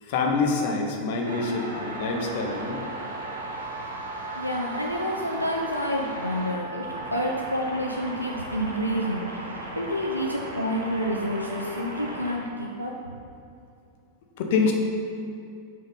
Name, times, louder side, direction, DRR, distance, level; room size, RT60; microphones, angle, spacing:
voice 1, 0.0-2.8 14.4-14.7, left 4 dB, 50° left, 2 dB, 1.0 m, -26 dB
Wind instrument woodwind instrument, 1.2-7.6, right 5 dB, 50° right, 0.7 m, -40 dB
sound 1, 1.2-6.5 6.8-12.4, right 1 dB, 80° right, 1.2 m, -37 dB
voice 2, 4.3-6.8 7.1-12.9, equal, 90° left, -1 dB, 0.5 m, -29 dB
5.5 x 5.4 x 5.3 m, 2.5 s
figure-of-eight pair, 90°, 0 cm